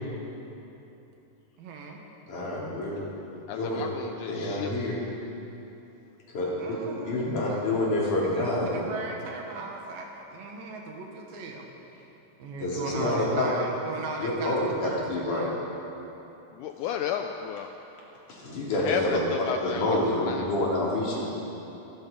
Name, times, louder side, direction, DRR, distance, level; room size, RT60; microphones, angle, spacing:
voice 1, 1.6-2.0 6.6-11.7 12.4-15.7, right 3 dB, 75° right, 1 dB, 3.4 m, -38 dB
voice 2, 2.3-3.0 3.5-3.8 4.3-5.0 6.3-6.8 7.0-8.8 12.6-13.5 14.2-15.5 18.3-19.2 19.6-21.2, left 1 dB, 60° left, -6 dB, 4.6 m, -27 dB
voice 3, 3.5-4.7 13.0-13.2 16.5-17.7 18.8-20.5, left 8 dB, 85° left, 5 dB, 1.8 m, -33 dB
24.5 x 11.5 x 5.2 m, 3.0 s
omnidirectional pair, 4.2 m